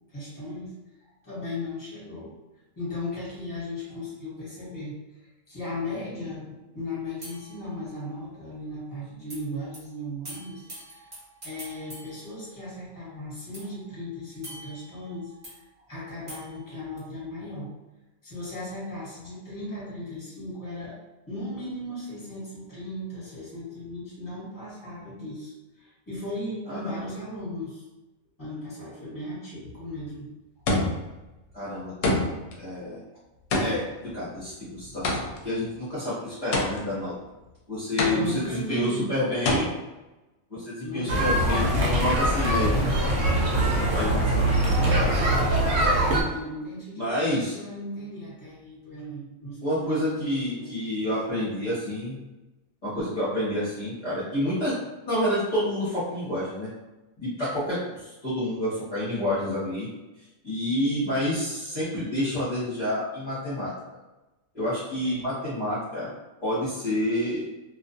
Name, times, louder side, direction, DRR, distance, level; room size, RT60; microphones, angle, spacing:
voice 1, 0.1-0.7 1.0-2.3 2.8-4.9 5.5-11.1 11.4-17.7 18.2-21.0 21.3-27.9 28.4-30.3 38.0-39.1 40.8-41.7 46.0-50.7 65.0-65.2, left 1 dB, 15° left, -8 dB, 1.1 m, -36 dB
sound 1, 7.2-8.4 9.3-9.4 9.7-9.8 10.2-13.0 13.5-15.6 16.3-17.0, right 1 dB, 35° right, 1.0 m, -46 dB
sound 2, 29.6-30.0 30.7-31.2 32.0-32.6 33.5-35.5 36.5-37.1 38.0-38.6 39.4-39.6, left 2 dB, 70° left, 0.9 m, -26 dB
voice 2, 31.5-32.2 32.6-33.0 33.6-37.1 37.7-39.7 40.5-45.1 46.9-47.5 49.6-52.2 52.8-54.8 55.1-56.7 57.2-59.9 60.2-63.7 64.5-66.1 66.4-67.4, left 1 dB, 35° left, -11 dB, 0.8 m, -29 dB
sound 3, 41.1-46.2, right 1 dB, 70° right, 0.9 m, -22 dB
2.4 x 2.3 x 2.6 m, 1.1 s
omnidirectional pair, 1.4 m